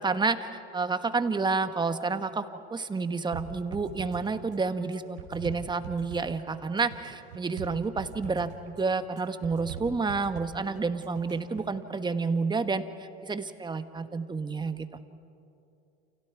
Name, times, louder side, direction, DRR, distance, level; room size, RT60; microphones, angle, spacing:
voice 1, 0.0-2.4 2.7-12.8 13.2-14.9, right 4 dB, 15° right, 10 dB, 1.2 m, -29 dB
sound 1, 3.3-11.8, right 7 dB, 80° right, 3.0 m, -43 dB
29.5 x 29.0 x 4.6 m, 2.7 s
hypercardioid pair, 95°, 33 cm